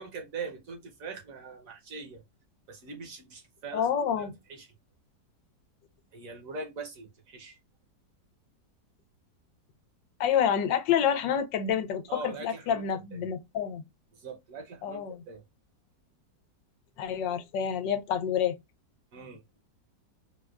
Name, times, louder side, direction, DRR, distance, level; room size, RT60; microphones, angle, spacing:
voice 1, 0.0-2.2 2.7-4.7 6.1-7.6 12.1-12.8 13.1-13.2 14.1-15.4 19.1-19.4, right 4 dB, 60° right, 1.0 m, -42 dB
voice 2, 3.7-4.3 10.2-13.8 14.8-15.2 17.0-18.6, left 8 dB, 90° left, 1.4 m, -28 dB
4.5 x 2.1 x 2.3 m
omnidirectional pair, 1.9 m